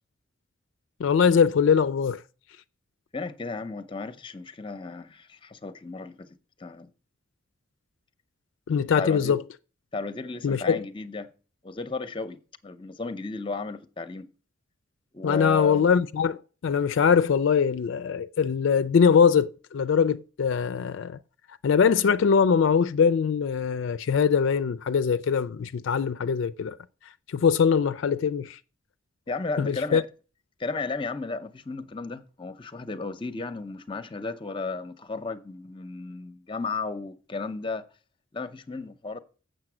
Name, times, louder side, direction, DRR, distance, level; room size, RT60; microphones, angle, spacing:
voice 1, 1.0-2.2 8.7-9.4 10.4-10.8 15.2-16.4 16.6-21.2 21.6-26.8 27.3-28.6 29.6-30.0, left 6 dB, 70° left, 0.4 m, -22 dB
voice 2, 3.1-6.3 6.6-6.9 9.0-9.4 9.9-11.3 11.6-14.3 15.1-15.9 29.3-30.0 30.6-37.8 38.3-39.2, left 3 dB, 25° left, 0.6 m, -34 dB
7.7 x 6.5 x 6.1 m
head